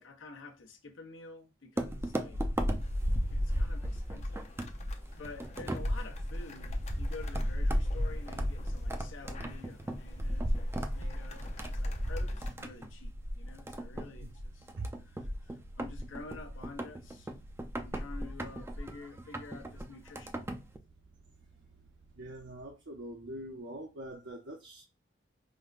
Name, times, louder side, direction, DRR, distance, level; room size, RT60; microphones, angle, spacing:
voice 1, 0.0-2.4 3.3-4.4 5.2-14.7 15.0-17.3 17.8-20.4, left 3 dB, 80° left, 0.8 m, -49 dB
sound 1, 1.8-20.8, equal, 15° right, 0.4 m, -34 dB
sound 2, 2.7-12.5, left 3 dB, 35° left, 0.5 m, -51 dB
sound 3, 5.1-22.7, right 3 dB, 85° right, 1.1 m, -60 dB
voice 2, 22.1-24.8, right 1 dB, 65° right, 0.6 m, -43 dB
5.0 x 2.1 x 2.3 m
head